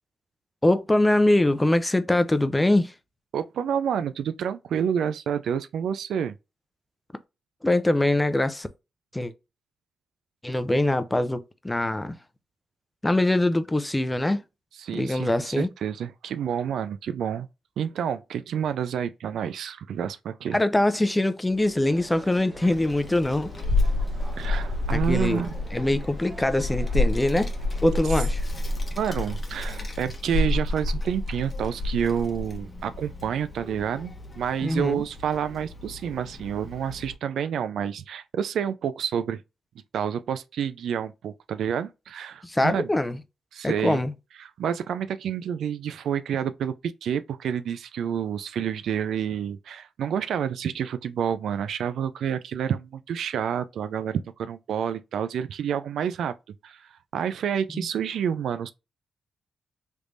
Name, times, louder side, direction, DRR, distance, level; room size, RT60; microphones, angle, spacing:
voice 1, 0.6-2.9 7.6-8.7 9.1-9.3 10.4-12.2 13.0-14.4 14.9-15.7 20.5-23.5 24.9-25.4 25.7-27.5 27.8-28.5 34.6-35.0 42.4-43.2 43.6-44.1 57.7-57.8, left 1 dB, 15° left, 0.5 m, -23 dB
voice 2, 3.3-6.4 14.8-17.5 17.8-20.6 24.4-25.5 29.0-39.4 39.9-42.9 43.5-44.0 44.4-56.3 56.6-58.7, right 8 dB, 80° right, 0.3 m, -29 dB
sound 1, 21.4-29.4, equal, 70° left, 0.9 m, -48 dB
sound 2, 21.8-28.1, right 2 dB, 50° right, 1.5 m, -48 dB
Child speech kid speaking, 22.7-37.1, left 2 dB, 30° left, 1.0 m, -30 dB
3.3 x 3.1 x 2.6 m
cardioid pair, 75°, 0 cm